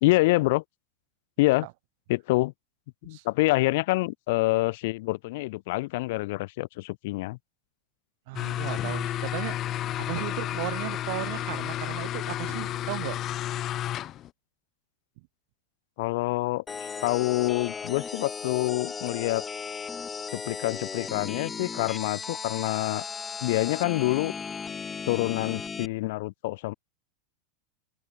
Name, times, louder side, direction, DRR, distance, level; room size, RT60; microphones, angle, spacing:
voice 1, 0.0-0.6 1.4-1.7 2.1-2.5 3.0-7.4 16.0-19.5 20.3-23.0 23.4-24.3 25.1-26.7, left 21 dB, 65° left, 3.5 m, -26 dB
voice 2, 8.3-13.2 15.2-15.3, right 24 dB, 60° right, 5.4 m, -36 dB
sound 1, 8.4-14.3, left 12 dB, 35° left, 0.6 m, -31 dB
sound 2, 16.7-25.9, left 5 dB, 15° left, 0.9 m, -36 dB
open air
supercardioid pair, 135°, 0 cm